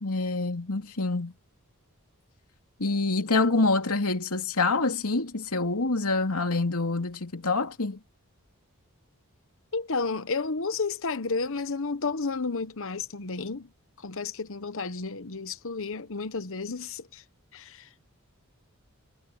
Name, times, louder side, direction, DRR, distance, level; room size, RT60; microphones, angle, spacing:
voice 1, 0.0-1.3 2.8-8.0, left 3 dB, 80° left, 2.8 m, -26 dB
voice 2, 9.7-13.7 14.0-17.2 17.5-17.9, left 4 dB, 60° left, 1.1 m, -32 dB
head